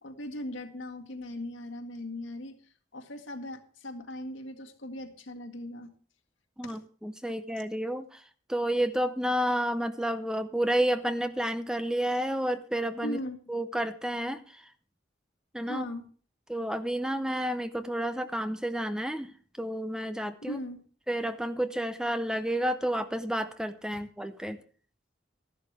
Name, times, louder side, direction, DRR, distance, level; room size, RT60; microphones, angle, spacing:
voice 1, 0.0-2.6 2.9-5.9 6.6-6.8 13.0-13.4 15.7-16.1 20.4-20.8, left 1 dB, 75° left, 5 dB, 1.8 m, -39 dB
voice 2, 6.6-8.2 8.5-13.2 13.5-14.6 15.5-15.8 16.5-20.6 21.1-24.6, right 1 dB, 5° right, 10 dB, 0.6 m, -30 dB
13.5 x 11.0 x 3.4 m, 0.43 s
head